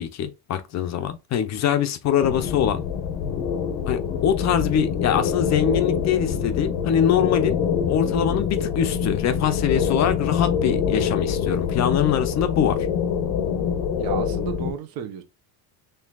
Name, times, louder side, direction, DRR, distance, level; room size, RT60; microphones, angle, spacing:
voice 1, 0.0-2.8 3.9-7.6 7.9-12.9, left 9 dB, 40° left, 0.5 m, -23 dB
sound 1, 2.2-14.7, left 7 dB, 85° left, 0.8 m, -25 dB
voice 2, 14.0-15.2, right 9 dB, 55° right, 0.9 m, -33 dB
4.5 x 3.3 x 2.3 m
cardioid pair, 150°, 41 cm